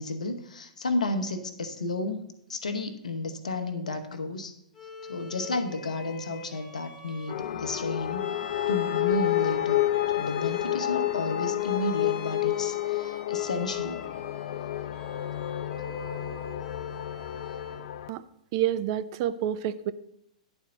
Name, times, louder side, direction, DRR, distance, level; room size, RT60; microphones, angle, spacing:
voice 1, 0.0-4.5 5.1-8.3 8.7-9.8 10.2-14.0, left 2 dB, 70° left, 8 dB, 1.0 m, -32 dB
Bowed string instrument, 4.7-17.9, left 2 dB, 15° left, 1.7 m, -46 dB
sound 1, 7.3-18.1, left 13 dB, 55° left, 0.5 m, -30 dB
voice 2, 18.5-19.9, right 11 dB, 45° right, 13 dB, 0.4 m, -28 dB
10.5 x 4.4 x 6.0 m, 0.77 s
figure-of-eight pair, 110°, 4 cm